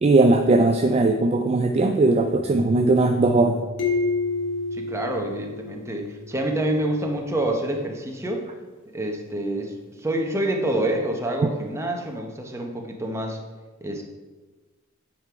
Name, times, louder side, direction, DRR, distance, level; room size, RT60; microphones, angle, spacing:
voice 1, 0.0-3.6, right 2 dB, 30° right, 5 dB, 0.3 m, -19 dB
sound 1, 2.2-7.8, left 1 dB, 50° right, 2.3 m, -42 dB
sound 2, 3.8-6.3, left 3 dB, 65° left, 1.3 m, -28 dB
voice 2, 4.7-8.4 8.9-13.4 13.8-14.0, right 1 dB, 15° right, 2 dB, 0.8 m, -27 dB
8.6 x 3.8 x 4.5 m, 1.3 s
head